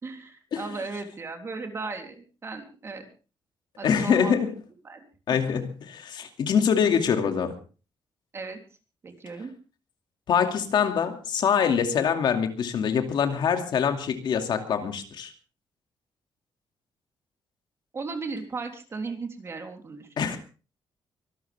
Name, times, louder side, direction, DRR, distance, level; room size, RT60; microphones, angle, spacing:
voice 1, 0.0-3.1 3.8-4.4 4.8-5.4 8.3-8.6 9.0-9.5 17.9-20.4, right 4 dB, 30° right, 4 dB, 3.3 m, -36 dB
voice 2, 3.8-4.5 5.3-7.5 10.3-15.3 20.2-20.4, left 7 dB, 60° left, 5 dB, 2.4 m, -24 dB
24.5 x 13.0 x 3.5 m, 0.36 s
cardioid pair, 150°, 8 cm